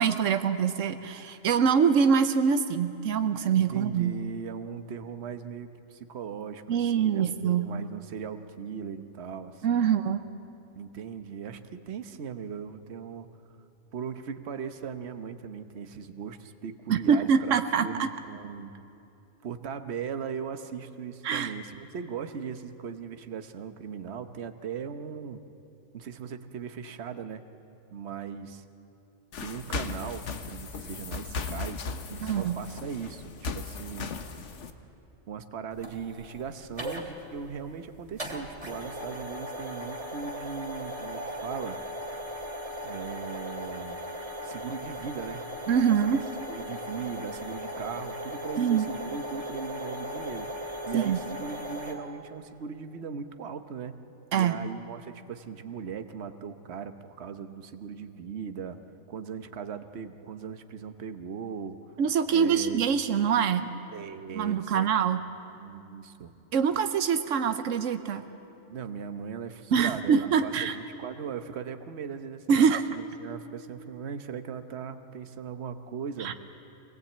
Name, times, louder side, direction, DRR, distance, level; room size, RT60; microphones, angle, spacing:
voice 1, 0.0-4.1 6.7-7.7 9.6-10.2 16.9-18.1 21.2-21.5 32.2-32.6 45.7-46.3 48.6-48.9 50.9-51.2 54.3-54.6 62.0-63.7 64.3-65.2 66.5-68.2 69.7-70.8 72.5-72.8 76.2-76.3, right 7 dB, 85° right, 10 dB, 1.2 m, -24 dB
voice 2, 3.5-9.9 10.7-13.3 13.9-18.7 19.4-25.4 25.9-27.4 27.9-28.6 29.4-31.8 32.1-34.1 35.3-41.8 42.8-44.0 44.4-45.5 46.1-46.2 46.5-50.5 50.9-54.0 54.3-58.8 59.1-61.8 62.3-62.8 63.9-64.9 65.6-66.3 68.7-76.4, right 6 dB, 60° right, 9 dB, 1.2 m, -38 dB
sound 1, 29.3-34.7, left 4 dB, 70° left, 1.4 m, -37 dB
sound 2, 35.7-51.9, equal, 30° right, 2.4 m, -38 dB
24.5 x 19.0 x 8.7 m, 2.9 s
omnidirectional pair, 1.3 m